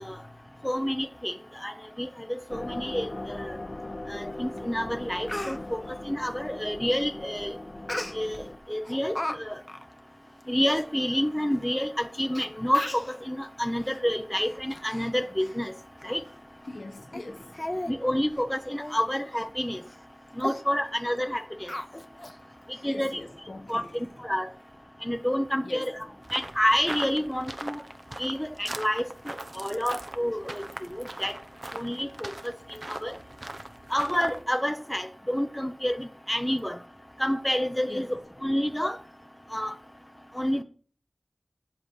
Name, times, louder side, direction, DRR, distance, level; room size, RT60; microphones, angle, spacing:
voice 1, 0.0-0.7 16.7-17.6 22.5-23.9 25.6-25.9 37.9-38.2, left 2 dB, 80° left, 1.5 m, -43 dB
voice 2, 0.6-1.3 1.6-3.6 4.1-7.5 8.1-8.4 8.7-9.5 10.5-15.7 16.0-16.2 17.9-19.8 20.4-21.7 22.8-23.2 23.7-24.5 25.0-25.9 26.3-27.8 28.2-30.7 30.9-31.4 31.7-32.5 32.9-33.1 33.9-36.8 37.2-38.1 38.4-39.0 39.5-39.7 40.4-40.6, equal, 10° left, 0.9 m, -29 dB
sound 1, 2.5-8.6, left 2 dB, 50° left, 1.2 m, -39 dB
Speech, 4.6-4.7 5.0-5.6 7.9-8.4 8.9-9.4 9.7-9.8 10.4-10.5 10.7-10.9 11.6-11.7 12.4-12.5 12.7-13.1 13.8-14.0 14.4-15.1 15.4-15.6 16.0-16.1 16.6-16.8 17.1-17.2 17.5-17.9 18.3-18.4 18.8-19.0 19.3-19.5 19.9-20.0 20.4-20.6 21.7-22.4 22.7-22.8, left 1 dB, 30° left, 1.1 m, -36 dB
sound 2, 26.2-34.4, right 1 dB, 40° right, 0.9 m, -40 dB
8.1 x 6.2 x 7.3 m
wide cardioid pair, 45°, 0 cm